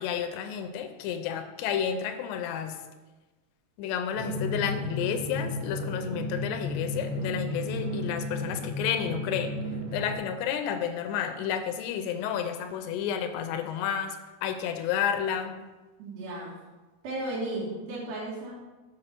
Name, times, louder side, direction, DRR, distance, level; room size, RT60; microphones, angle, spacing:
voice 1, 0.0-2.8 3.8-9.5 9.9-14.2 14.4-15.6, left 8 dB, 90° left, 7 dB, 2.8 m, -31 dB
Drum, 4.1-10.1, left 1 dB, 55° right, 2.4 m, -33 dB
voice 2, 16.0-16.5 17.0-18.5, right 1 dB, 80° right, -7 dB, 3.9 m, -34 dB
7.8 x 5.4 x 5.9 m, 1.2 s
omnidirectional pair, 4.8 m